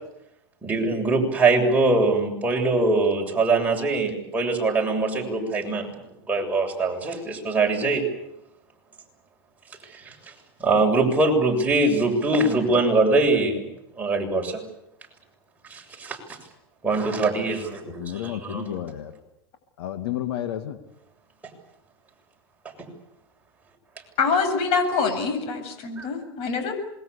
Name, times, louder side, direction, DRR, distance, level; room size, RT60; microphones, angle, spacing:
voice 1, 0.6-6.0 6.3-8.0 9.9-10.3 10.6-13.7 14.0-14.6 15.7-16.4 16.8-18.7 22.6-22.9 26.0-26.1, right 3 dB, 10° right, 0 dB, 7.3 m, -23 dB
voice 2, 18.0-19.2 19.8-20.8, left 11 dB, 75° left, 7 dB, 2.3 m, -31 dB
voice 3, 24.2-26.7, left 5 dB, 50° left, 7 dB, 7.5 m, -25 dB
27.0 x 22.0 x 8.4 m, 0.85 s
supercardioid pair, 125°, 13 cm